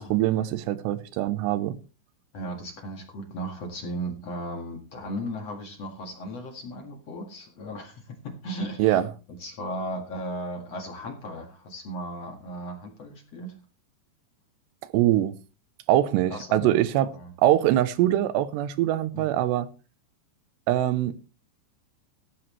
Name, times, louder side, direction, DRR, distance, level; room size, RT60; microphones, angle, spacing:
voice 1, 0.0-1.8 8.8-9.1 14.9-15.3 15.9-17.1 17.4-19.7 20.7-21.2, right 13 dB, 90° right, 2.9 m, -23 dB
voice 2, 2.3-9.0 9.4-13.5 16.3-17.3 19.1-19.3, right 1 dB, 50° left, 2.3 m, -36 dB
15.5 x 12.0 x 3.2 m
omnidirectional pair, 4.9 m